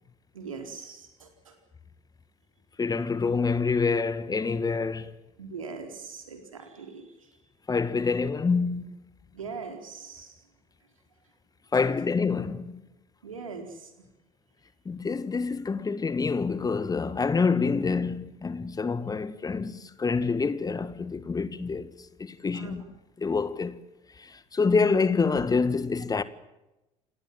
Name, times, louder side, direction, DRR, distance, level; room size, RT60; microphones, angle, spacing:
voice 1, 0.3-1.5 5.4-7.0 9.3-10.3 13.2-13.9 22.5-22.8, right 5 dB, 80° right, 4.1 m, -41 dB
voice 2, 2.8-5.1 7.7-8.9 11.7-12.8 14.8-21.9 22.2-22.8 23.2-23.8 24.2-26.2, left 4 dB, 20° left, 1.6 m, -27 dB
29.0 x 19.0 x 7.7 m
figure-of-eight pair, 60°, 17 cm